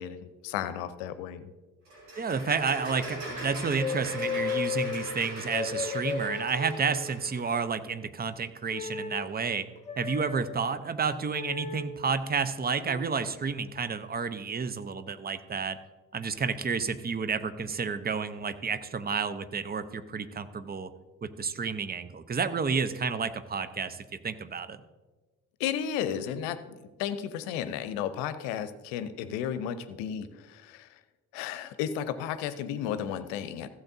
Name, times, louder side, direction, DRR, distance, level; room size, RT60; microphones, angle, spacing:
voice 1, 0.0-1.5 25.6-30.9 31.3-33.7, left 9 dB, 70° left, 12 dB, 0.8 m, -33 dB
sound 1, 1.9-7.5, right 1 dB, 80° right, 3.1 m, -41 dB
voice 2, 2.2-9.7 10.0-15.8 16.1-20.9 21.2-24.8, right 5 dB, 20° right, 13 dB, 0.7 m, -31 dB
sound 2, 3.8-4.9 5.4-7.2 8.7-9.3 9.9-10.4 11.3-11.9 12.8-13.1, left 6 dB, 15° left, 1.2 m, -34 dB
15.5 x 7.8 x 2.7 m, 1.2 s
hypercardioid pair, 45°, 44 cm